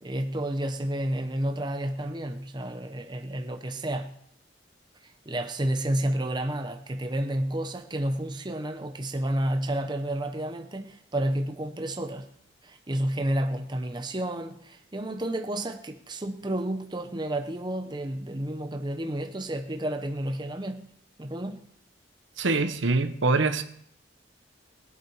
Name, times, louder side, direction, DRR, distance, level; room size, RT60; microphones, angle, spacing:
voice 1, 0.0-4.1 5.3-12.3 12.6-20.9 21.2-21.6, right 1 dB, 25° right, 0.8 m, -30 dB
voice 2, 22.4-23.6, right 3 dB, 75° right, 1.1 m, -24 dB
21.0 x 8.4 x 4.7 m
head